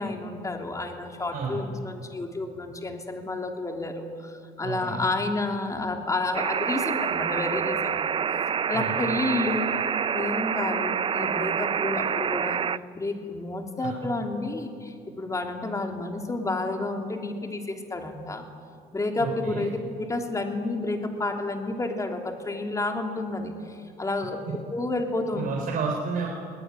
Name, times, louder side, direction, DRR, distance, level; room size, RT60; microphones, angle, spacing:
voice 1, 0.0-8.0 8.7-9.7 10.1-12.6 12.9-18.4 18.9-19.7 20.0-25.5, left 2 dB, 20° left, 3 dB, 3.2 m, -30 dB
voice 2, 1.3-1.6 4.6-5.0 8.7-9.0 13.8-14.1 19.2-19.7 25.3-26.3, right 5 dB, 55° right, -1 dB, 4.0 m, -31 dB
sound 1, 6.3-12.8, right 7 dB, 30° right, 0.5 m, -27 dB
21.5 x 18.5 x 9.8 m, 2.4 s
cardioid pair, 110°, 17 cm